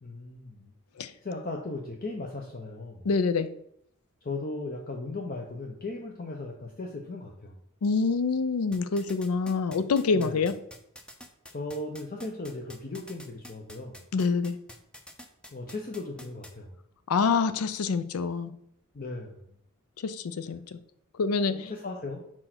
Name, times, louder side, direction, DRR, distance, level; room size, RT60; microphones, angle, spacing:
voice 1, 0.0-0.7 1.2-3.1 4.2-7.5 10.1-10.4 11.5-13.9 15.5-16.7 18.9-19.3 21.5-22.2, left 2 dB, 40° left, 1 dB, 0.7 m, -37 dB
voice 2, 3.0-3.5 7.8-10.5 14.1-14.6 17.1-18.5 20.0-20.8 21.2-21.7, left 4 dB, 85° left, 12 dB, 0.5 m, -26 dB
sound 1, 8.7-16.5, left 1 dB, 5° left, 0.5 m, -46 dB
4.5 x 4.4 x 5.9 m, 0.72 s
head